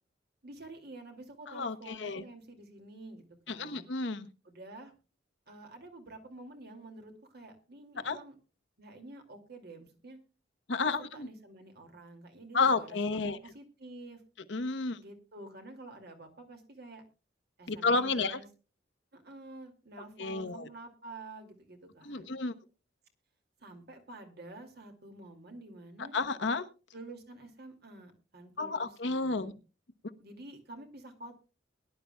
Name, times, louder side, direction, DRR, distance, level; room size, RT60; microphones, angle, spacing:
voice 1, 0.4-3.9 4.4-4.9 5.5-8.3 8.8-10.2 10.9-14.2 15.0-17.0 17.6-18.5 19.1-22.3 23.6-26.2 26.9-29.6 30.2-31.4, right 2 dB, 55° right, 5 dB, 2.4 m, -49 dB
voice 2, 1.5-2.2 3.5-4.3 8.0-8.2 10.7-11.3 12.5-13.4 14.5-15.0 17.7-18.4 20.2-20.7 22.0-22.5 26.1-26.6 28.6-29.5, left 3 dB, 65° left, 8 dB, 1.0 m, -31 dB
22.0 x 11.0 x 2.3 m, 0.33 s
head